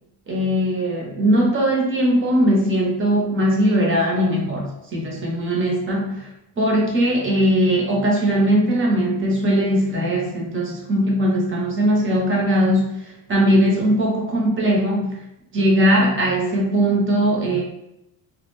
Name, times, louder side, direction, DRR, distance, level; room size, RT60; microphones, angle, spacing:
voice 1, 0.3-6.3 6.6-15.2 15.5-17.6, equal, 30° right, -2 dB, 0.7 m, -20 dB
2.2 x 2.1 x 3.1 m, 0.84 s
cardioid pair, 120°, 40 cm